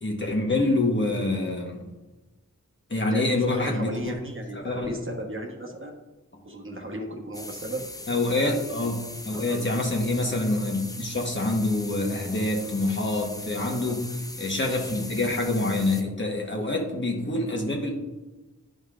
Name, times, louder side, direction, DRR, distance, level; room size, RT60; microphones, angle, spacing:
voice 1, 0.0-1.9 2.9-4.2 4.5-5.0 8.1-14.0 14.4-17.9, left 2 dB, 35° left, 0 dB, 1.3 m, -26 dB
voice 2, 3.0-6.0 6.4-7.8 9.3-9.6 13.8-14.0, right 1 dB, 40° right, 0 dB, 1.2 m, -35 dB
sound 1, 7.3-16.0, left 1 dB, 10° left, 0.6 m, -40 dB
11.0 x 5.3 x 2.5 m, 1.1 s
wide cardioid pair, 70°, 32 cm